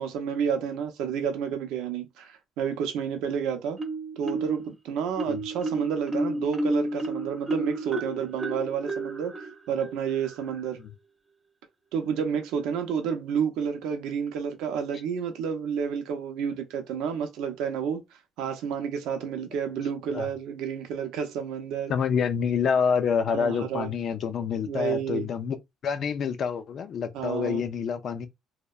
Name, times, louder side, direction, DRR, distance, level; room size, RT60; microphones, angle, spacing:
voice 1, 0.0-3.8 4.2-10.8 11.9-18.0 18.4-21.9 23.3-23.9 24.6-25.3 27.1-27.6, right 7 dB, 85° right, 0.5 m, -30 dB
Marimba xylophone, 3.8-4.7 5.2-10.7, right 2 dB, 15° right, 0.8 m, -32 dB
voice 2, 21.9-25.6 25.8-28.3, left 6 dB, 50° left, 0.4 m, -27 dB
2.7 x 2.1 x 2.3 m
cardioid pair, 120°, 0 cm